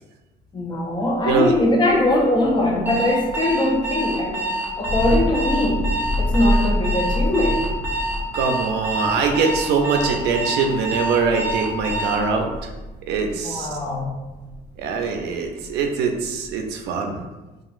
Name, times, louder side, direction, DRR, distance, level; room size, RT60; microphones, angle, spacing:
voice 1, 0.5-7.7 13.3-14.2, left 1 dB, 25° left, -1 dB, 0.6 m, -21 dB
Thunder, 1.2-17.0, left 1 dB, 90° left, 0.5 m, -30 dB
Alarm, 2.9-12.3, right 1 dB, 10° right, 0.7 m, -27 dB
voice 2, 8.3-12.7 13.1-13.7 14.8-17.2, right 5 dB, 80° right, 4 dB, 0.4 m, -23 dB
2.9 x 2.4 x 2.4 m, 1.1 s
cardioid pair, 110°, 17 cm